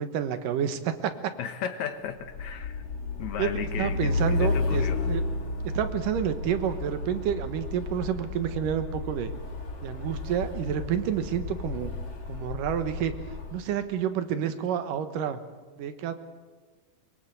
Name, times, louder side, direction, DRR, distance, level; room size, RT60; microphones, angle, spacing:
voice 1, 0.0-1.3 3.4-3.5 3.8-5.2 5.6-9.3 9.8-11.9 12.3-13.1 13.5-15.4 15.8-16.1, right 9 dB, 85° right, 10 dB, 2.9 m, -29 dB
voice 2, 1.4-2.8 3.2-5.0, left 8 dB, 65° left, 9 dB, 2.5 m, -35 dB
Truck, 2.2-13.6, left 3 dB, 85° left, 5.2 m, -32 dB
22.5 x 22.0 x 8.1 m, 1.4 s
omnidirectional pair, 3.7 m